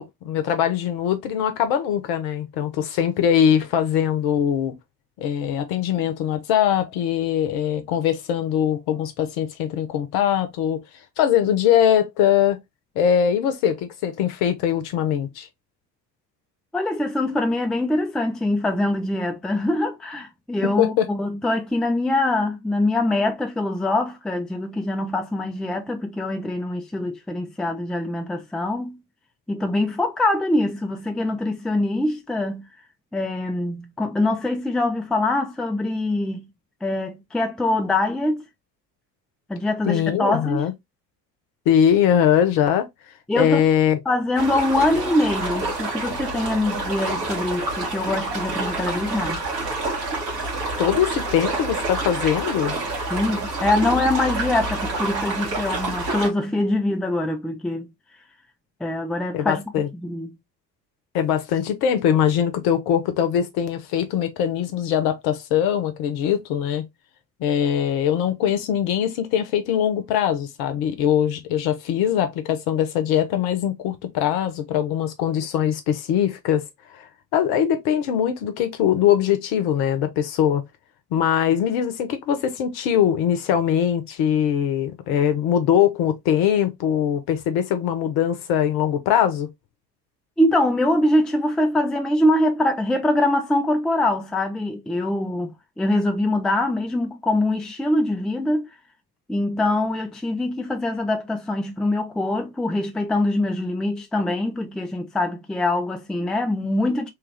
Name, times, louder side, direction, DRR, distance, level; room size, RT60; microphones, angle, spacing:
voice 1, 0.0-4.7 5.2-10.8 11.2-12.6 13.0-15.5 20.8-21.1 39.9-40.7 41.7-42.9 43.4-44.0 50.8-52.8 59.3-59.9 61.1-66.8 67.4-76.6 76.9-77.0 77.3-80.6 81.1-89.5, left 9 dB, 55° left, 0.9 m, -21 dB
voice 2, 16.7-29.0 29.5-32.7 33.1-36.5 36.8-38.4 39.5-40.7 43.3-43.7 44.1-49.4 53.1-57.9 58.8-59.6 60.0-60.4 90.4-98.7 99.3-107.1, left 1 dB, ahead, 0.5 m, -23 dB
sound 1, 44.3-56.3, right 2 dB, 80° right, 1.3 m, -28 dB
3.2 x 2.4 x 3.2 m
figure-of-eight pair, 60°, 47 cm